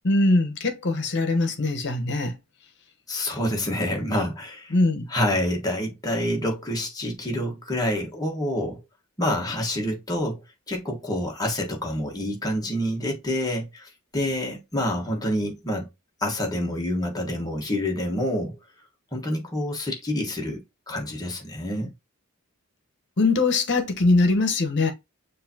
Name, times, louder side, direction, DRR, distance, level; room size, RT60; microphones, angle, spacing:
voice 1, 0.0-2.3 4.7-5.1 23.2-24.9, left 2 dB, 55° left, 1.0 m, -22 dB
voice 2, 3.1-4.7 5.1-8.8 9.2-10.4 10.7-15.9 16.2-18.5 19.1-20.6 20.9-21.9, left 1 dB, 15° left, 1.2 m, -27 dB
6.6 x 2.7 x 2.8 m
head